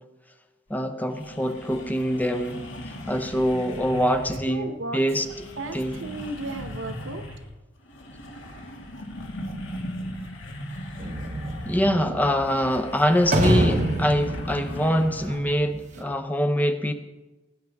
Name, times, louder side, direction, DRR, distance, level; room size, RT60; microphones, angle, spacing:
sound 1, 0.7-0.8 1.1-4.6 5.0-7.6 7.8-15.4, equal, 70° left, 2.1 m, -38 dB
voice 1, 0.7-5.3 5.7-6.0 11.7-16.9, equal, 10° left, 8 dB, 0.6 m, -24 dB
voice 2, 4.5-5.0 5.6-7.2, right 2 dB, 75° right, 8 dB, 1.1 m, -34 dB
sound 2, 11.0-16.0, right 1 dB, 35° right, 1.1 m, -27 dB
18.0 x 9.3 x 3.5 m, 1.1 s
head